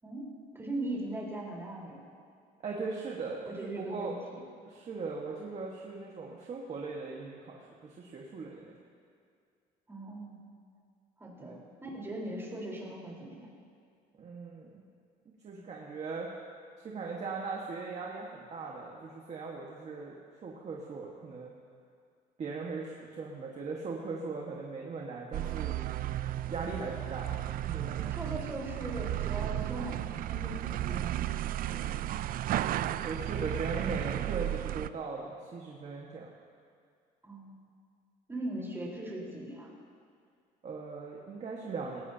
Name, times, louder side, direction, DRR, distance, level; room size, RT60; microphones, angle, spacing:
voice 1, 0.0-2.0 3.5-4.4 9.9-10.4 11.2-13.5 28.1-32.2 37.2-37.6 38.3-39.7, right 1 dB, 15° right, -4 dB, 4.2 m, -40 dB
voice 2, 2.6-4.1 4.6-8.7 11.4-11.6 14.2-14.8 15.4-16.3 16.8-21.5 22.4-25.8 26.5-28.0 32.7-36.3 40.6-42.0, right 4 dB, 40° right, -2 dB, 1.6 m, -39 dB
sound 1, 25.3-34.9, right 13 dB, 60° right, 0.4 m, -34 dB
18.0 x 18.0 x 2.9 m, 2.3 s
cardioid pair, 110°, 17 cm